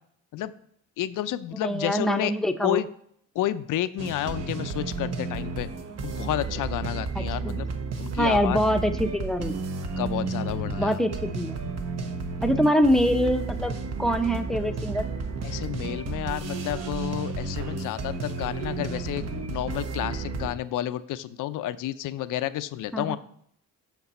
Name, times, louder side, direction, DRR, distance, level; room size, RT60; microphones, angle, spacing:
voice 1, 1.0-2.3 2.6-2.9 3.3-5.7 6.0-7.7 8.0-8.6 10.0-11.0 15.4-23.2, left 13 dB, 70° left, 13 dB, 0.6 m, -30 dB
voice 2, 1.5-2.8 7.1-7.6 8.2-9.6 10.8-11.7 12.4-15.1 22.9-23.2, equal, ahead, 6 dB, 0.7 m, -25 dB
sound 1, 4.0-20.5, right 4 dB, 50° right, 1.1 m, -32 dB
8.2 x 6.0 x 4.2 m, 0.65 s
cardioid pair, 90°, 32 cm